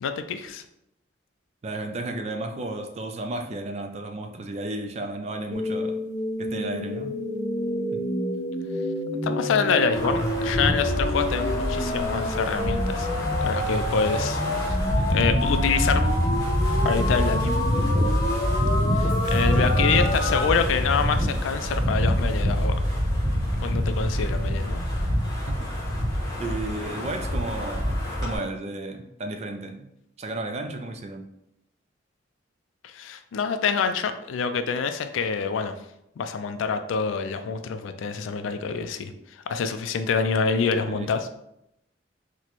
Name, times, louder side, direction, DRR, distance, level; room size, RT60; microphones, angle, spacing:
voice 1, 0.0-0.6 9.2-13.1 13.4-14.8 15.1-16.0 16.8-17.5 19.0-22.8 23.5-24.8 32.8-35.7 36.2-39.1 39.5-41.3, left 5 dB, 80° left, 9 dB, 0.3 m, -26 dB
voice 2, 1.6-6.0 6.4-7.2 7.9-8.1 25.3-25.7 26.4-29.9 30.2-31.3 40.9-41.2, right 2 dB, 35° right, 5 dB, 0.3 m, -33 dB
sound 1, 5.5-20.5, left 1 dB, 35° left, 0.6 m, -28 dB
Wind, 9.9-28.4, equal, 20° left, 1.2 m, -26 dB
sound 2, 19.1-25.1 26.0-26.1, equal, 70° right, 0.9 m, -42 dB
4.0 x 2.2 x 3.0 m, 0.80 s
head